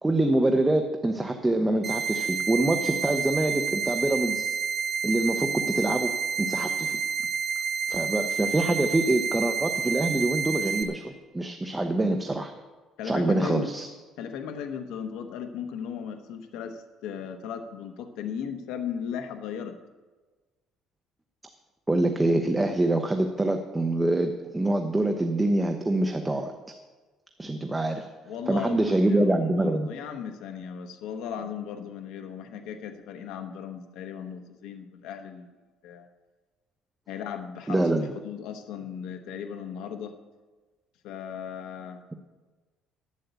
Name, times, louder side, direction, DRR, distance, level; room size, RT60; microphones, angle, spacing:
voice 1, 0.0-4.4 5.0-7.0 7.9-12.5 13.0-13.9 21.9-26.5 27.4-28.1 28.5-29.9 37.7-38.1, right 2 dB, 10° right, 5 dB, 0.7 m, -25 dB
sound 1, 1.8-10.8, right 6 dB, 35° right, 1.2 m, -29 dB
voice 2, 13.0-13.7 14.2-19.8 28.2-35.5 35.8-36.1 37.1-40.1 41.0-42.0, left 7 dB, 85° left, 6 dB, 1.0 m, -37 dB
11.5 x 8.2 x 8.0 m, 1.3 s
cardioid pair, 150°, 0 cm